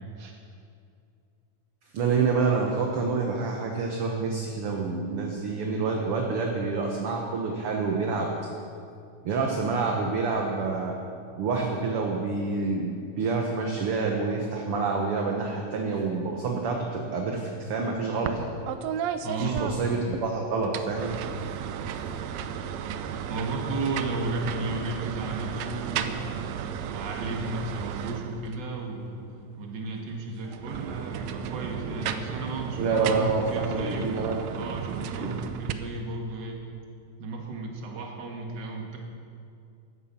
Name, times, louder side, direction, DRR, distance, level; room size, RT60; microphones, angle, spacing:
voice 1, 1.9-8.3 9.2-10.9 11.4-18.5 19.4-21.2 32.8-34.5 35.2-35.3, right 4 dB, 60° right, 1 dB, 1.6 m, -27 dB
sound 1, 18.3-18.4 18.7-20.2 20.6-28.7 30.4-35.7, right 8 dB, 80° right, 1.6 m, -34 dB
voice 2, 19.2-19.8 23.3-26.5 26.8-29.3 29.6-34.2 34.5-36.6 37.2-39.0, right 2 dB, 40° right, 1 dB, 2.0 m, -34 dB
15.5 x 12.5 x 5.9 m, 2.4 s
omnidirectional pair, 3.8 m